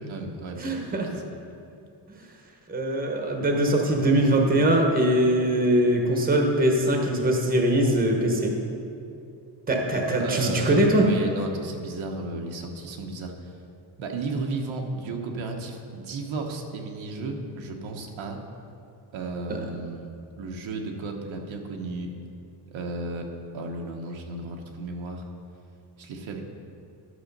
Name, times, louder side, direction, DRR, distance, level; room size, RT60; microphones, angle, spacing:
voice 1, 0.0-1.2 10.1-13.5 14.0-18.4 19.1-20.1 20.4-22.1 22.7-25.2 26.0-26.4, right 3 dB, 85° right, 2 dB, 1.2 m, -34 dB
voice 2, 0.6-1.1 2.7-8.5 9.7-11.1 19.5-19.6, right 1 dB, 20° right, 2 dB, 1.0 m, -22 dB
11.0 x 6.2 x 5.3 m, 2.6 s
wide cardioid pair, 165°, 46 cm